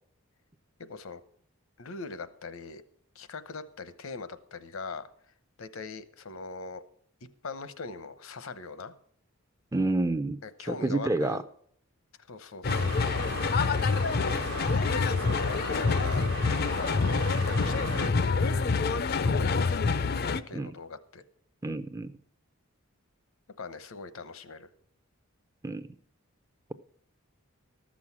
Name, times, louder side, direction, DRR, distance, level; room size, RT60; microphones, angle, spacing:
voice 1, 0.9-1.2 1.8-2.8 3.1-5.1 5.6-6.8 7.4-8.9 10.4-11.4 12.3-13.0 15.1-16.3 16.8-18.6 19.1-21.2 23.6-24.7, left 4 dB, 75° left, 13 dB, 0.8 m, -41 dB
voice 2, 9.7-10.4 10.7-11.4 20.5-20.7 21.6-22.1 25.6-25.8, right 2 dB, 15° right, 10 dB, 0.4 m, -28 dB
sound 1, 12.6-20.4, left 4 dB, 45° left, 0.5 m, -27 dB
sound 2, 12.7-18.1, right 4 dB, 55° right, 1.2 m, -39 dB
14.0 x 6.3 x 7.2 m, 0.63 s
head